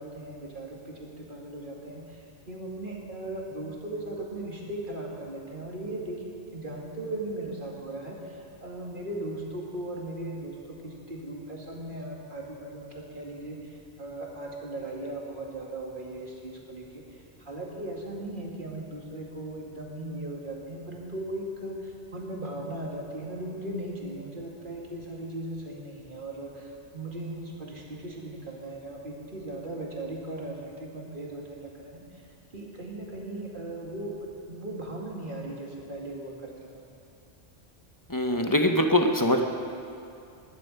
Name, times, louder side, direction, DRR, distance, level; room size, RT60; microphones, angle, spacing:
voice 1, 0.0-32.3 32.5-36.8, right 1 dB, 45° right, -2 dB, 2.5 m, -38 dB
voice 2, 38.1-39.4, left 1 dB, 20° left, 4 dB, 0.9 m, -23 dB
20.5 x 11.5 x 5.5 m, 2.5 s
omnidirectional pair, 1.2 m